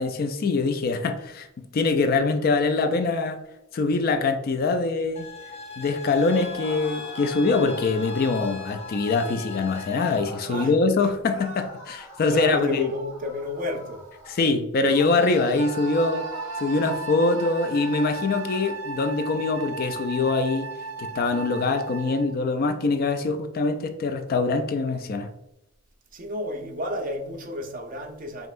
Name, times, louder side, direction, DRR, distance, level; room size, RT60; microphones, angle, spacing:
voice 1, 0.0-3.4 3.7-5.3 5.8-12.9 14.3-16.3 16.6-20.7 21.0-25.3, left 3 dB, 45° left, 7 dB, 0.3 m, -24 dB
sound 1, 5.2-10.2, left 4 dB, 30° left, 1.2 m, -39 dB
sound 2, 6.2-10.6 11.3-14.5 14.8-18.8, equal, 75° left, 1.4 m, -42 dB
voice 2, 12.3-14.0 26.1-28.5, left 1 dB, 40° right, 3 dB, 0.7 m, -31 dB
Wind instrument woodwind instrument, 15.6-22.4, right 4 dB, 80° right, 0.4 m, -35 dB
5.4 x 2.9 x 2.5 m, 0.88 s
head